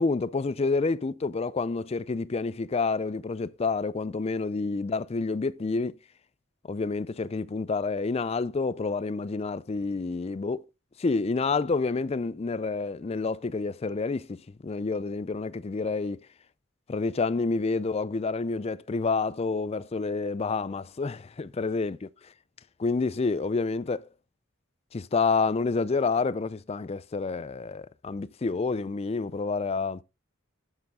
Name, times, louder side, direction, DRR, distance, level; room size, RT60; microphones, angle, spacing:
voice 1, 0.0-6.0 6.7-10.6 11.0-16.3 16.9-22.3 22.8-24.1 24.9-30.0, left 4 dB, 30° left, 0.4 m, -28 dB
9.5 x 7.0 x 3.7 m
head